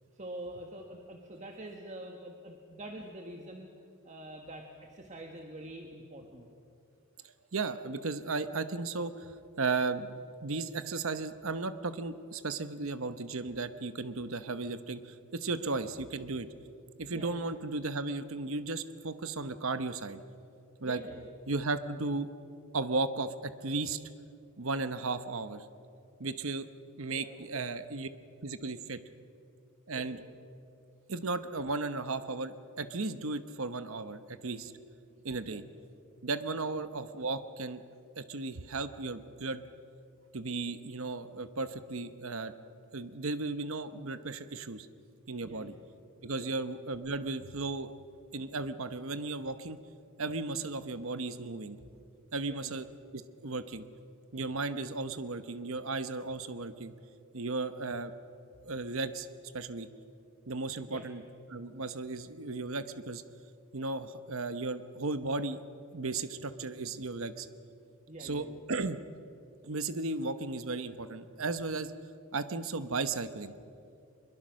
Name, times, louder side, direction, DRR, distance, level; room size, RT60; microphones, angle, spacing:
voice 1, 0.2-3.7 4.0-6.5 15.6-15.9 17.1-17.5 20.8-21.3 27.1-27.6 29.9-30.2 35.4-35.6 45.4-45.8 46.4-46.5 52.4-52.8 60.9-61.0 68.1-68.6, right 1 dB, 35° right, 2 dB, 1.6 m, -46 dB
voice 2, 7.5-16.5 17.0-20.2 20.8-21.0 21.5-22.3 22.7-24.0 24.6-25.6 26.2-26.7 27.0-28.1 28.4-29.0 29.9-30.2 31.1-34.7 35.2-35.6 36.2-37.8 38.2-39.6 40.3-42.5 42.9-44.9 45.3-45.7 46.2-47.9 48.3-49.8 50.2-51.8 52.3-52.9 53.1-53.9 54.3-56.9 57.3-58.1 58.6-59.3 59.5-59.9 60.5-61.2 61.5-63.2 63.7-65.6 65.9-67.5 68.2-69.0 69.6-71.9 72.3-73.5, right 3 dB, 65° right, 11 dB, 1.0 m, -35 dB
23.0 x 22.0 x 6.4 m, 2.5 s
head